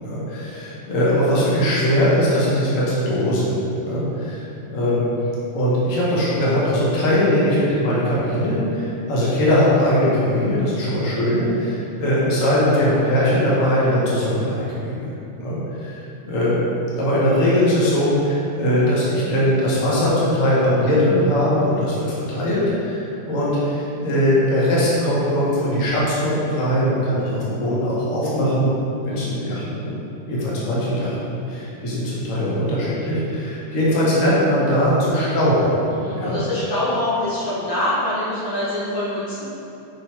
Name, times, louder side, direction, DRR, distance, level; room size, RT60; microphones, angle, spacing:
voice 1, 0.0-5.1 5.5-15.1 15.4-28.7 29.1-29.9 30.3-35.7 36.1-36.4, equal, 45° left, -7 dB, 1.4 m, -20 dB
voice 2, 35.9-39.5, left 1 dB, 85° left, -10 dB, 2.4 m, -25 dB
5.6 x 4.0 x 4.3 m, 2.8 s
omnidirectional pair, 2.1 m